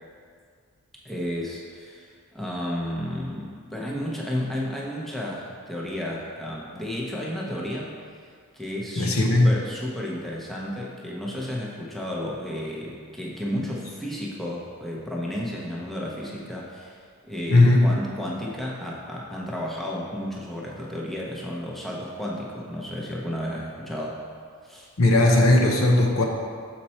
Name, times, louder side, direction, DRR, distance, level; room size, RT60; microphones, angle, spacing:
voice 1, 1.0-7.9 8.5-24.2 24.6-24.9, left 1 dB, ahead, -4 dB, 0.8 m, -32 dB
voice 2, 9.0-9.5 17.5-17.9 25.0-26.2, left 2 dB, 65° left, 1 dB, 0.8 m, -17 dB
6.7 x 4.3 x 4.3 m, 2.1 s
head